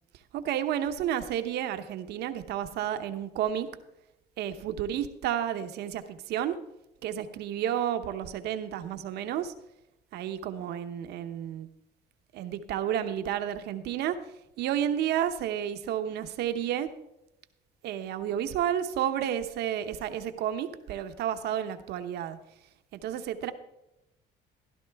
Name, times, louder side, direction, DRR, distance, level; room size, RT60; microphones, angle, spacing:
voice 1, 0.3-3.7 4.4-6.6 7.0-9.5 10.1-11.7 12.3-14.2 14.6-16.9 17.8-22.4 22.9-23.5, right 10 dB, 75° right, 9 dB, 0.9 m, -31 dB
15.0 x 12.0 x 3.5 m, 0.88 s
cardioid pair, 110°, 17 cm